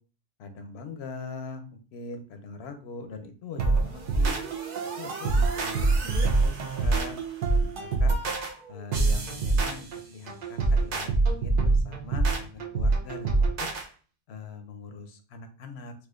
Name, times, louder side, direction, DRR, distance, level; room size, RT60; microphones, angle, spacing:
voice 1, 0.4-1.6 1.9-4.4 5.0-7.2 7.5-8.1 8.7-13.7 14.3-15.9, left 4 dB, 85° left, 7 dB, 0.8 m, -41 dB
sound 1, 3.6-13.9, right 3 dB, 60° right, 0.7 m, -25 dB
4.2 x 2.3 x 2.4 m, 0.38 s
omnidirectional pair, 1.0 m